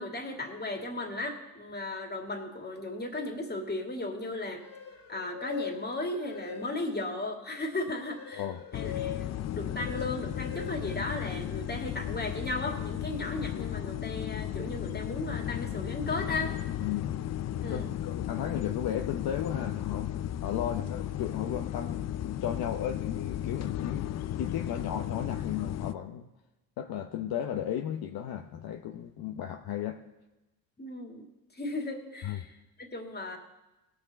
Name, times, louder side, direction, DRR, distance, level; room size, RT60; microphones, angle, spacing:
voice 1, 0.0-4.6 5.1-8.5 8.7-16.6 17.6-17.9 30.8-31.3 31.5-33.4, left 2 dB, 25° left, 3 dB, 2.3 m, -36 dB
sound 1, 4.5-7.1 7.5-11.8, left 8 dB, 75° left, 1.6 m, -43 dB
sound 2, 8.7-25.9, left 11 dB, 40° left, 0.5 m, -35 dB
voice 2, 16.8-17.2 17.5-26.3 26.8-30.0 32.2-32.4, left 10 dB, 55° left, 4 dB, 0.9 m, -35 dB
18.0 x 6.7 x 4.1 m, 1.0 s
supercardioid pair, 70°, 42 cm